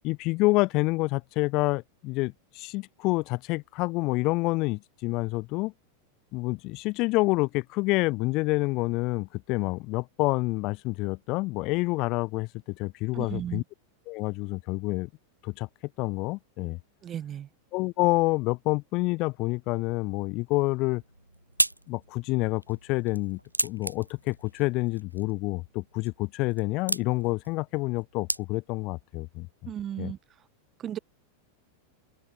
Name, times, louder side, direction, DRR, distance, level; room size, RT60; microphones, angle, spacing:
voice 1, 0.0-5.7 6.3-12.5 12.8-13.6 14.1-15.1 15.4-15.7 16.0-16.8 17.7-21.0 21.9-29.5 30.0-30.1, left 23 dB, 40° left, 0.4 m, -28 dB
voice 2, 13.1-13.6 17.0-17.5 29.6-30.2 30.8-31.0, right 10 dB, 25° right, 0.6 m, -35 dB
sound 1, 20.9-28.9, right 1 dB, 85° right, 0.5 m, -35 dB
open air
figure-of-eight pair, 90°, 0 cm